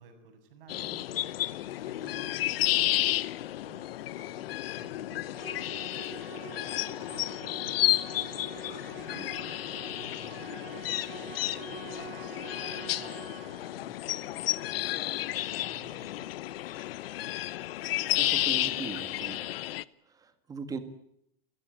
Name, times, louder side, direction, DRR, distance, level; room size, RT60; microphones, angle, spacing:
voice 1, 0.0-3.1 3.6-5.7 6.3-16.3, right 5 dB, 65° right, 6 dB, 7.7 m, -55 dB
sound 1, 0.7-19.8, left 14 dB, 75° left, 0.9 m, -32 dB
Musical instrument, 5.3-13.8, right 8 dB, 85° right, 5.2 m, -46 dB
voice 2, 18.1-19.4 20.1-20.8, right 5 dB, 10° right, 10 dB, 1.8 m, -39 dB
28.0 x 15.5 x 8.3 m, 0.76 s
supercardioid pair, 165°, 30 cm